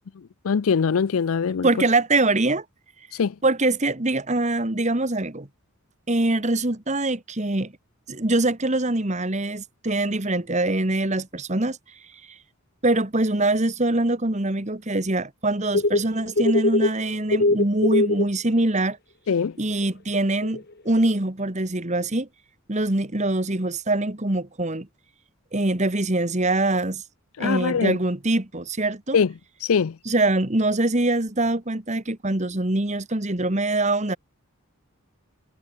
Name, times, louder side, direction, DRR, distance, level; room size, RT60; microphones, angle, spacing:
voice 1, 0.4-1.7 3.1-3.3 19.3-19.6 27.4-28.0 29.1-29.3 29.6-30.0, left 6 dB, 75° left, 0.5 m, -22 dB
voice 2, 1.6-2.6 3.4-5.5 6.1-7.7 8.1-11.8 12.8-19.0 19.6-22.3 22.7-24.9 25.5-27.0 27.4-29.2 30.0-34.2, right 2 dB, 30° right, 1.7 m, -23 dB
sound 1, 15.7-17.0 17.3-18.2 19.7-19.8 20.4-20.6, left 2 dB, 45° left, 1.7 m, -21 dB
head